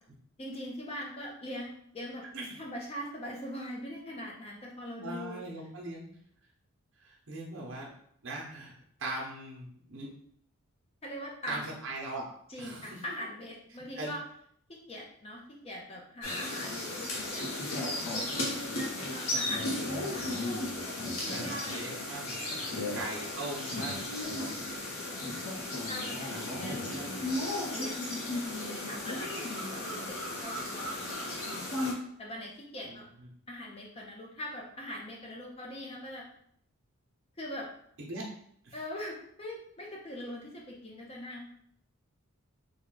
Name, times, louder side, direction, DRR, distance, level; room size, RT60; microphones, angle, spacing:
voice 1, 0.4-2.2 2.6-5.4 11.0-11.7 12.5-14.2 14.7-20.3 21.2-21.8 22.4-22.9 24.6-25.4 25.8-27.1 27.6-28.2 28.6-31.7 32.2-33.1 33.5-36.3 37.4-37.7 38.7-41.5, left 1 dB, 25° left, -1 dB, 0.5 m, -42 dB
voice 2, 5.0-6.1 7.0-7.9 8.2-8.7 9.0-10.1 11.5-12.2 12.6-13.0 14.0-14.1 21.3-24.2 26.3-27.4 32.8-33.3 38.0-38.2 38.6-38.7, right 2 dB, 60° right, -3 dB, 0.8 m, -40 dB
sound 1, 16.2-31.9, left 2 dB, 70° left, 0.9 m, -35 dB
3.5 x 2.2 x 3.8 m, 0.68 s
head